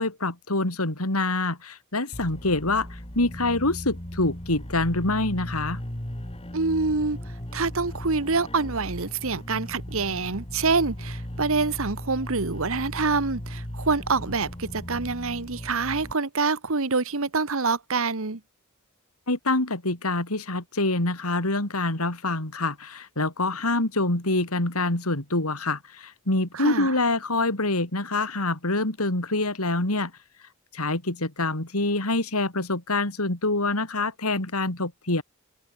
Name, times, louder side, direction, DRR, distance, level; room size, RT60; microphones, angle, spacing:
voice 1, 0.0-5.8 19.3-30.1 30.7-35.2, left 2 dB, 85° left, 4.2 m, -26 dB
sound 1, 2.1-16.1, equal, 25° left, 2.6 m, -37 dB
voice 2, 6.5-7.2 7.5-18.4 26.5-26.9, right 4 dB, 65° right, 1.4 m, -26 dB
head